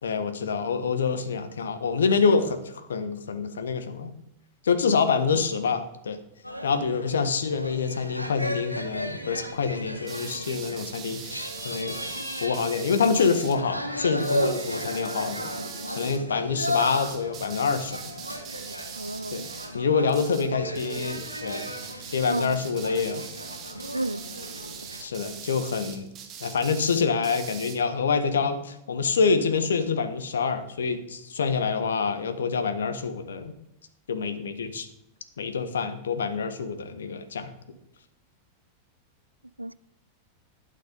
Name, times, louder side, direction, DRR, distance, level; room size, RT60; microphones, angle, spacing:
voice 1, 0.0-4.1 4.6-6.2 6.6-12.0 12.4-15.5 15.9-18.0 19.3-19.4 19.7-21.7 22.1-23.3 25.0-26.1 26.4-33.5 34.1-34.9 35.4-37.5, left 5 dB, 65° left, 1.3 m, -26 dB
sound 1, 6.4-25.0, equal, 90° left, 1.3 m, -35 dB
sound 2, 10.0-13.6 14.2-16.2 16.6-19.8 20.1-20.5 20.7-27.8, right 7 dB, 30° right, 2.0 m, -42 dB
voice 2, 19.0-19.5 22.3-22.6 23.9-24.2 39.6-39.7, right 1 dB, 85° right, 0.3 m, -31 dB
12.0 x 9.2 x 5.3 m
figure-of-eight pair, 90°, 0 cm